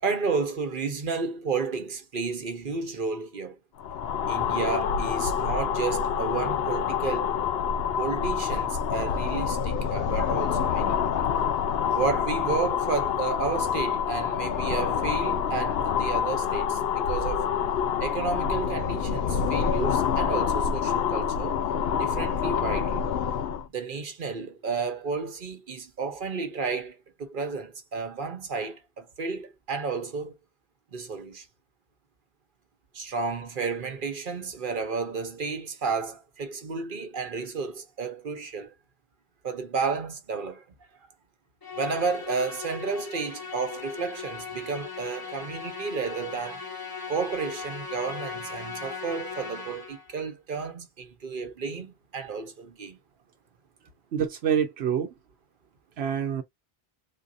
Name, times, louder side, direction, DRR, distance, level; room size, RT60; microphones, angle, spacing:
voice 1, 0.0-3.6 4.3-7.4 8.0-11.1 11.9-17.6 18.0-21.6 22.0-23.0 23.7-30.4 30.9-31.5 32.9-38.7 39.4-40.6 41.8-46.6 47.1-53.0, right 4 dB, 55° right, 1.0 m, -32 dB
sound 1, 3.8-23.7, left 7 dB, 75° left, 0.8 m, -27 dB
Musical instrument, 41.6-50.1, left 5 dB, 25° left, 0.8 m, -38 dB
voice 2, 54.1-55.1 56.0-56.4, right 8 dB, 85° right, 0.9 m, -26 dB
4.0 x 2.6 x 2.5 m
omnidirectional pair, 1.0 m